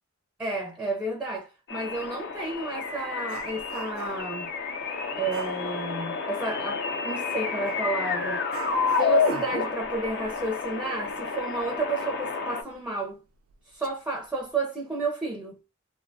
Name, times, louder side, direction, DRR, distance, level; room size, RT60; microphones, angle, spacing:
voice 1, 0.4-4.5 5.1-8.5 9.0-13.2 13.7-15.6, right 3 dB, 5° right, 0.4 m, -31 dB
sound 1, 1.7-12.6, left 5 dB, 55° left, 0.5 m, -30 dB
Dog, 1.9-2.1 2.5-4.4 5.3-5.7 7.6-7.8 8.5-11.8 12.1-12.2 12.7-12.8 13.5-13.9 14.3-14.5, right 6 dB, 75° right, 0.3 m, -42 dB
2.6 x 2.1 x 2.6 m
head